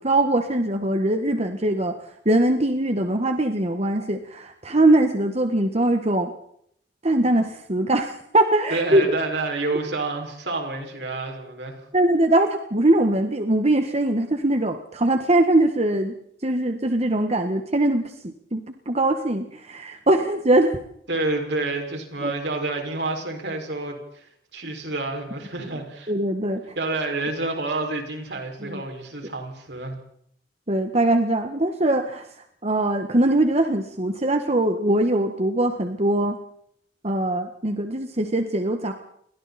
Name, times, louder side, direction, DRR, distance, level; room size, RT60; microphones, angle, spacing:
voice 1, 0.0-2.0 2.2-6.3 7.0-9.1 11.9-16.1 16.4-20.8 22.2-22.3 26.1-26.7 28.6-28.8 30.7-32.3 32.6-36.4 37.0-38.9, right 1 dB, 40° right, 6 dB, 1.6 m, -22 dB
voice 2, 8.7-11.8 21.1-26.1 26.8-30.0, right 2 dB, 75° right, 3 dB, 6.0 m, -29 dB
30.0 x 22.5 x 4.4 m, 0.70 s
head